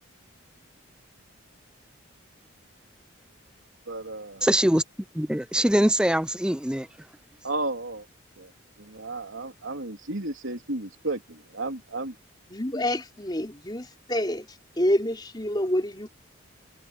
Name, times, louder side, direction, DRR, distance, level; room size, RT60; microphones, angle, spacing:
voice 1, 3.9-4.4 7.4-8.0 8.4-8.5 8.8-12.1, right 2 dB, 70° right, 3.2 m, -33 dB
voice 2, 4.4-4.8 5.2-6.9, right 1 dB, 5° right, 0.5 m, -22 dB
voice 3, 12.5-14.5 14.8-16.1, left 1 dB, 20° left, 3.7 m, -27 dB
head